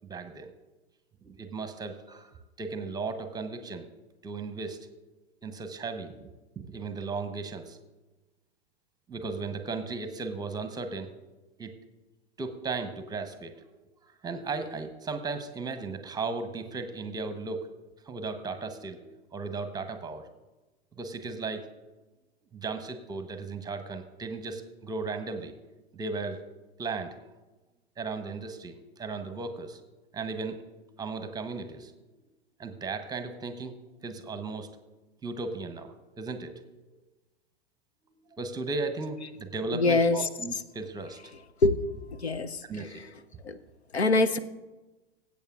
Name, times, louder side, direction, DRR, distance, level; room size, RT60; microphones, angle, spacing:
voice 1, 0.1-0.5 1.2-3.9 4.2-4.9 5.4-6.3 6.6-7.8 9.1-11.1 11.6-11.7 12.4-13.7 14.2-17.7 18.1-20.3 21.0-21.7 22.5-25.5 25.9-26.4 26.8-27.2 28.0-29.8 30.1-30.6 30.9-31.9 32.6-33.7 34.0-34.7 35.2-36.5 38.1-41.2 42.7-43.0, right 4 dB, 10° right, 8 dB, 0.9 m, -36 dB
voice 2, 39.7-40.3 41.6-41.9 42.2-42.6 43.4-43.6 43.9-44.4, left 3 dB, 85° left, 12 dB, 0.7 m, -24 dB
20.5 x 8.4 x 2.4 m, 1.1 s
figure-of-eight pair, 100°, 32 cm